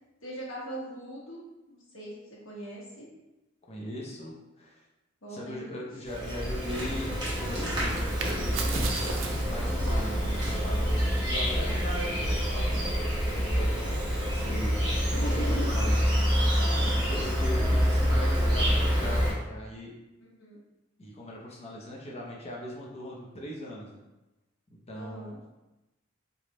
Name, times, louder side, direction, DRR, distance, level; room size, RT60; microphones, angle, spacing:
voice 1, 0.2-2.1 2.4-3.1 5.2-5.6 15.1-15.7 16.7-17.2 20.2-20.6 24.9-25.4, right 1 dB, 85° left, -4 dB, 1.2 m, -40 dB
voice 2, 3.7-4.7 5.3-8.9 9.4-19.9 21.0-24.0 24.7-25.4, left 1 dB, 30° left, -3 dB, 0.7 m, -39 dB
Insect, 6.1-19.3, equal, 20° right, 0.9 m, -27 dB
sound 1, 7.3-13.1, right 4 dB, 80° right, 0.5 m, -41 dB
3.3 x 2.3 x 3.9 m, 1.0 s
head